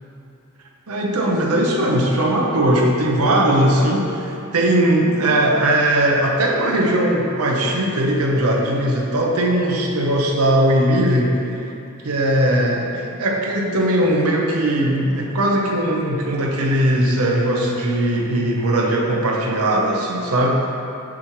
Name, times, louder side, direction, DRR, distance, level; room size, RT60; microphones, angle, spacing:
voice 1, 0.9-11.4 12.0-20.6, right 1 dB, 90° right, 0 dB, 0.7 m, -19 dB
6.1 x 5.8 x 3.1 m, 2.8 s
head